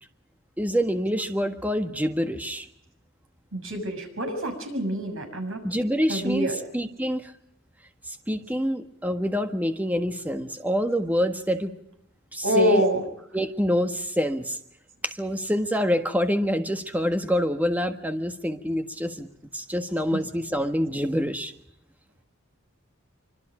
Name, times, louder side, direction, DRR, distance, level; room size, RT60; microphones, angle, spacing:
voice 1, 0.6-2.7 5.6-7.3 8.1-11.7 12.3-12.8 13.3-14.6 15.0-19.3 19.5-21.5, equal, 10° right, 7 dB, 1.5 m, -26 dB
voice 2, 3.5-5.6 6.1-6.6 12.4-13.0 20.1-20.2, equal, 80° right, 4 dB, 6.6 m, -25 dB
25.5 x 25.5 x 5.0 m, 0.77 s
head